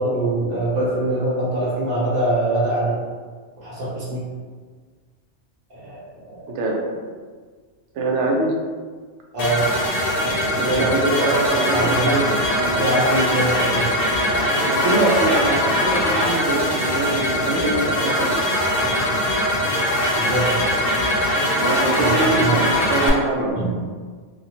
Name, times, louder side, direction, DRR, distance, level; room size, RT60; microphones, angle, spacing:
voice 1, 0.0-3.0 3.6-4.2 5.7-6.0 9.3-9.7 10.7-11.4 11.7-12.2 12.8-13.8 20.2-20.5 21.9-22.6 23.5-23.7, right 1 dB, 55° right, -7 dB, 1.1 m, -23 dB
voice 2, 6.5-6.8 7.9-8.5 10.6-12.9 14.2-18.4 21.6-23.6, right 2 dB, 85° right, -1 dB, 0.9 m, -23 dB
sound 1, 9.4-23.1, left 1 dB, 60° left, 0.7 m, -21 dB
2.6 x 2.4 x 2.8 m, 1.5 s
omnidirectional pair, 1.2 m